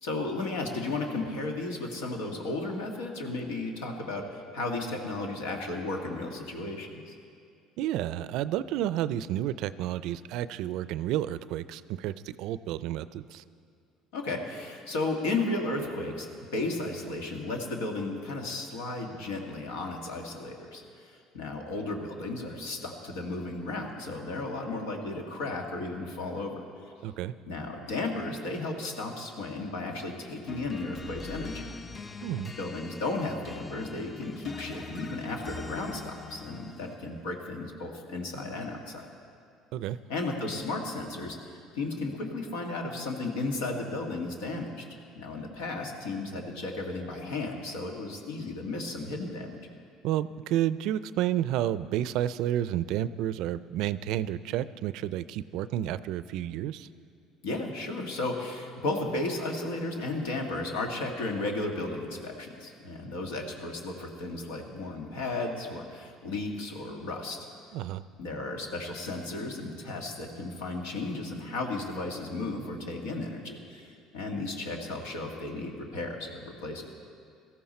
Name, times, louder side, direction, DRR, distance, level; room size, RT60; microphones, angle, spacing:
voice 1, 0.0-7.1 14.1-26.6 27.5-31.7 32.6-39.1 40.1-41.4 41.7-44.8 45.2-49.6 57.4-67.5 68.2-77.0, left 2 dB, 85° left, 2 dB, 1.9 m, -34 dB
voice 2, 7.8-13.4 27.0-27.3 32.2-32.5 39.7-40.0 50.0-56.9 67.7-68.0, right 12 dB, 70° right, 16 dB, 0.4 m, -31 dB
sound 1, 30.5-37.2, left 3 dB, 25° left, 0.7 m, -43 dB
17.5 x 14.0 x 4.3 m, 2.3 s
supercardioid pair, 80°, 0 cm